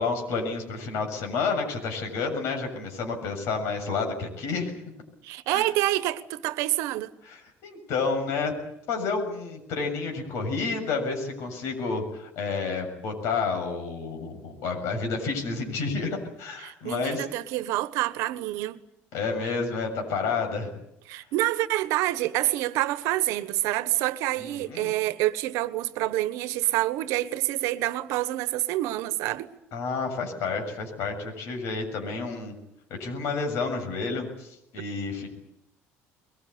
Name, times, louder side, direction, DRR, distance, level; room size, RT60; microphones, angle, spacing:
voice 1, 0.0-4.8 5.5-5.7 7.2-8.5 8.9-17.3 19.1-20.8 24.4-24.9 29.7-32.6 32.9-35.3, left 4 dB, 70° left, 7.0 m, -30 dB
voice 2, 5.2-7.1 16.6-18.8 21.1-29.5, right 16 dB, 85° right, 1.3 m, -27 dB
22.5 x 21.5 x 9.6 m
cardioid pair, 155°, 5 cm